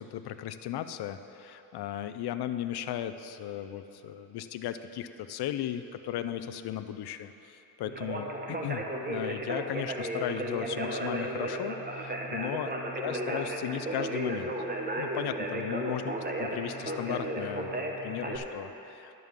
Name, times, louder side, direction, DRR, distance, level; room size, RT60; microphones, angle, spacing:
voice 1, 0.0-12.7 13.0-14.5 15.0-19.1, left 11 dB, 75° left, 11 dB, 0.5 m, -36 dB
Conversation, 7.9-18.4, right 1 dB, 25° right, 1.2 m, -34 dB
11.0 x 5.4 x 7.3 m, 3.0 s
cardioid pair, 65°, 39 cm